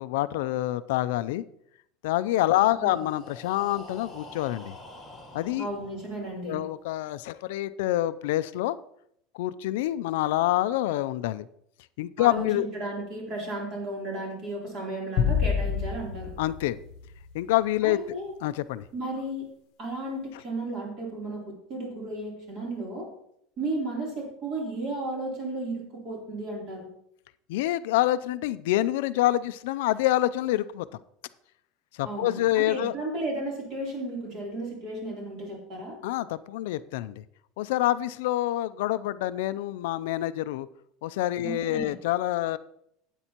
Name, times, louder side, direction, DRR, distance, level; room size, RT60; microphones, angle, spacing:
voice 1, 0.0-1.4 2.0-4.7 5.3-5.7 6.4-8.8 9.3-11.5 12.0-12.7 16.4-16.8 17.3-18.0 18.4-18.8 27.5-30.9 32.0-32.9 36.0-37.2 37.6-40.7 41.0-42.6, left 15 dB, 75° left, 15 dB, 0.4 m, -26 dB
Breathing, 2.7-6.5, left 1 dB, ahead, 2.3 m, -47 dB
voice 2, 5.6-6.6 12.2-16.3 17.8-18.3 18.9-19.5 19.8-23.1 23.6-26.9 32.0-36.0 41.4-41.9, right 2 dB, 35° right, -2 dB, 3.3 m, -34 dB
sound 1, 15.2-17.7, left 7 dB, 50° left, 0.9 m, -28 dB
12.5 x 8.9 x 2.9 m, 0.72 s
cardioid pair, 170°, 0 cm